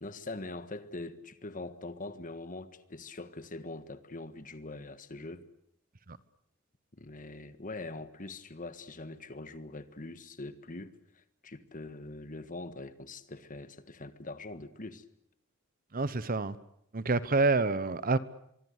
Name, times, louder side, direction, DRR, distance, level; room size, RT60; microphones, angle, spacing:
voice 1, 0.0-5.4 6.9-15.0, left 2 dB, 40° left, 1.6 m, -43 dB
voice 2, 15.9-16.6 16.9-18.2, right 3 dB, 45° right, 1.0 m, -27 dB
24.5 x 24.0 x 8.1 m
head